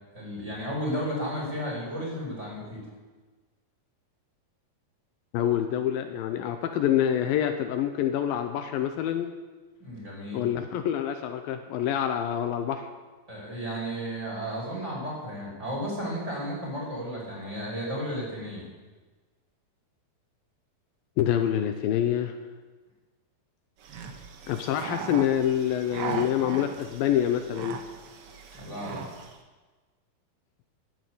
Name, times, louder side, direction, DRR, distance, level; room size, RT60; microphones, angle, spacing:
voice 1, 0.1-2.9 9.8-10.4 13.3-18.6 28.6-29.0, equal, 15° right, -4 dB, 5.6 m, -33 dB
voice 2, 5.3-9.3 10.3-12.9 21.2-22.3 24.5-27.8, left 10 dB, 80° left, 7 dB, 2.5 m, -26 dB
sound 1, 23.8-29.4, right 5 dB, 65° right, 1.4 m, -38 dB
14.5 x 9.4 x 8.4 m, 1.3 s
omnidirectional pair, 4.3 m